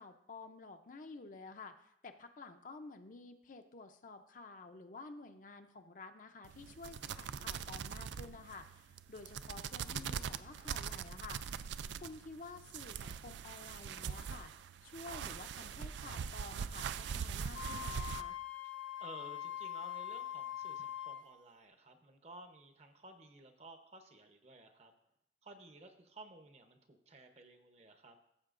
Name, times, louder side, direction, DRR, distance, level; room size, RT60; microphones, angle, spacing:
voice 1, 0.0-11.4 12.0-14.5 14.8-18.4, left 3 dB, 45° left, 7 dB, 0.6 m, -51 dB
sound 1, 6.4-18.2, right 7 dB, 80° right, 0.3 m, -42 dB
Wind instrument woodwind instrument, 17.5-21.3, left 11 dB, 85° left, 0.7 m, -43 dB
voice 2, 19.0-24.9 25.4-28.2, right 2 dB, 35° right, 6 dB, 0.8 m, -55 dB
14.0 x 7.4 x 2.5 m, 0.76 s
head